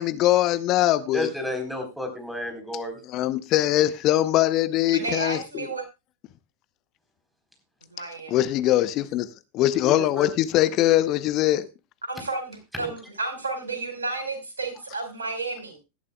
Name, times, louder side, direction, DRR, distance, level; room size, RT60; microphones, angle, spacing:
voice 1, 0.0-1.3 3.1-5.7 8.3-9.3 9.5-11.7, left 14 dB, 35° left, 0.8 m, -22 dB
voice 2, 1.1-3.0 9.8-10.3 12.8-12.9, left 1 dB, ahead, 4.2 m, -31 dB
voice 3, 4.9-5.9 7.9-8.4 12.0-15.8, right 3 dB, 75° right, 4.7 m, -32 dB
18.0 x 12.0 x 2.3 m
figure-of-eight pair, 90°, 0 cm